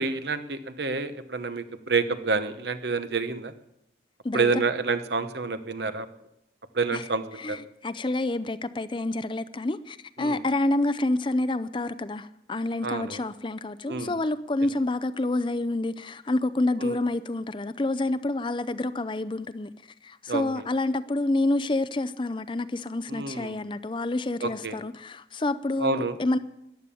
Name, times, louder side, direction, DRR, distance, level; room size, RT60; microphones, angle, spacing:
voice 1, 0.0-3.5 4.3-6.1 6.7-7.2 7.5-7.6 10.2-10.4 12.8-13.2 13.9-14.1 16.8-17.0 20.3-20.4 23.1-23.6 24.4-24.8 25.8-26.2, right 4 dB, 65° right, 1.0 m, -28 dB
voice 2, 4.2-4.6 6.9-19.7 20.0-26.4, left 2 dB, 25° left, 0.5 m, -28 dB
14.5 x 10.5 x 7.0 m
head